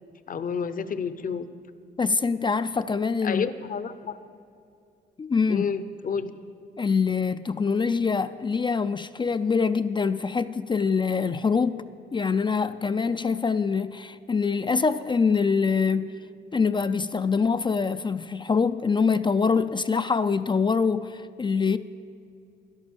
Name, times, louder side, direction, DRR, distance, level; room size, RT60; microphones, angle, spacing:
voice 1, 0.3-1.5 3.2-4.2 5.5-6.3, left 6 dB, 45° left, 0.7 m, -30 dB
voice 2, 2.0-3.4 5.2-5.7 6.8-11.8 12.1-16.1 16.5-21.8, left 5 dB, 25° left, 0.4 m, -24 dB
11.5 x 11.0 x 7.2 m
cardioid pair, 90°, 20 cm